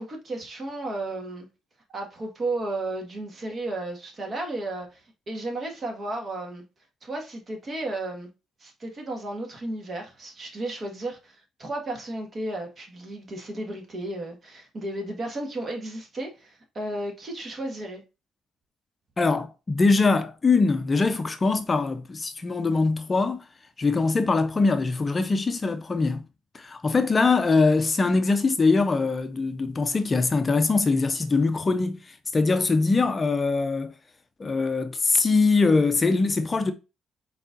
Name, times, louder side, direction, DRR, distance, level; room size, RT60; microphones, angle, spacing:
voice 1, 0.0-1.5 1.9-6.6 7.0-8.3 8.6-18.0, right 2 dB, 40° right, 1.7 m, -33 dB
voice 2, 19.2-23.4 23.8-26.2 26.5-33.9 34.4-36.7, left 3 dB, 30° left, 0.5 m, -22 dB
4.5 x 4.1 x 2.6 m
cardioid pair, 90°, 0 cm